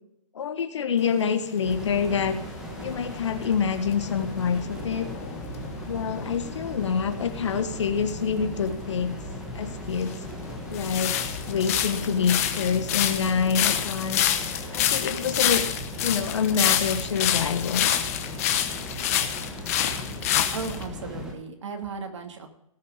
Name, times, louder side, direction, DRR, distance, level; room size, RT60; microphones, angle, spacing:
voice 1, 0.3-2.4 2.8-5.1 5.9-9.1 9.5-10.1 10.7-11.1 11.5-14.3 14.7-15.6 16.0-17.9, left 6 dB, 55° left, 10 dB, 1.4 m, -26 dB
sound 1, 1.0-7.1 8.7-8.8 9.6-20.8, left 11 dB, 25° left, 0.9 m, -28 dB
sound 2, 1.6-21.3, equal, 5° right, 1.5 m, -37 dB
voice 2, 20.5-22.5, right 5 dB, 55° right, 5 dB, 2.5 m, -35 dB
18.5 x 6.6 x 5.0 m, 0.79 s
hypercardioid pair, 165°, 18 cm